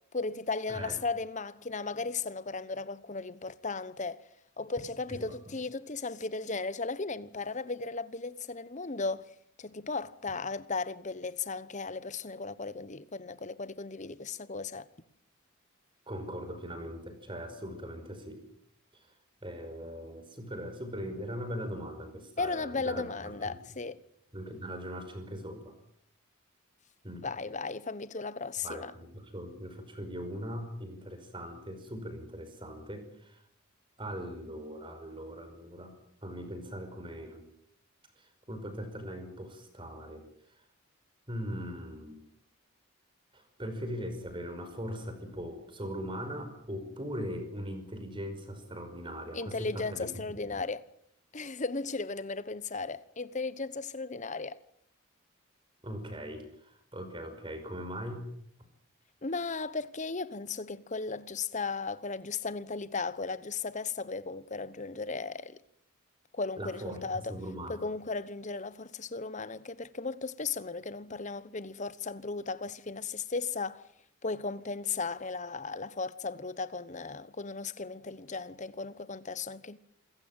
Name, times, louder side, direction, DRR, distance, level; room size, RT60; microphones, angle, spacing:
voice 1, 0.1-4.2 4.6-9.3 9.6-14.9 22.4-24.0 27.2-28.9 49.3-50.9 51.3-54.6 59.2-65.6 66.3-67.3 67.7-73.8 74.2-79.8, left 4 dB, 35° left, 1.0 m, -36 dB
voice 2, 16.1-18.4 19.4-23.5 24.3-25.7 27.0-27.3 28.6-33.4 34.0-36.0 36.2-37.4 38.2-40.2 41.3-42.2 43.3-50.6 55.8-58.3 66.6-67.0 67.3-67.9, equal, 25° right, 5.4 m, -40 dB
27.5 x 15.5 x 9.1 m
head